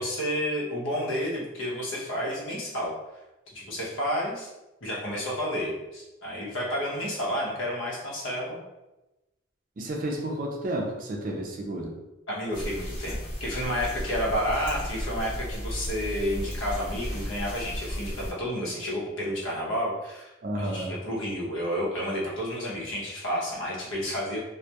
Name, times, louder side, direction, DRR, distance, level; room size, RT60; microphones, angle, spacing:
voice 1, 0.0-2.9 3.5-4.5 4.8-8.6 12.3-20.3 20.6-24.4, equal, 90° left, -4 dB, 0.7 m, -30 dB
voice 2, 9.8-11.9 20.4-21.0, right 1 dB, 45° right, 1 dB, 0.4 m, -31 dB
sound 1, 12.5-18.3, equal, 45° left, 0.9 m, -34 dB
2.2 x 2.1 x 2.7 m, 1.0 s
head